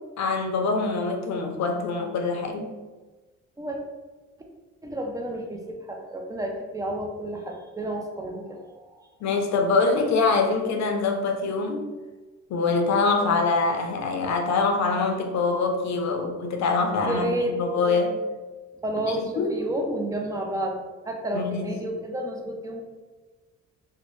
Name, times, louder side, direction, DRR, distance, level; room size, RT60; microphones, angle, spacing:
voice 1, 0.2-2.7 9.2-11.9 12.5-18.1 19.1-19.5 21.3-21.7, left 4 dB, 65° left, 4 dB, 0.5 m, -24 dB
voice 2, 4.8-8.9 17.0-18.0 18.8-20.8 21.1-22.8, right 1 dB, 10° right, 2 dB, 0.4 m, -31 dB
2.6 x 2.1 x 3.0 m, 1.3 s
cardioid pair, 90°, 30 cm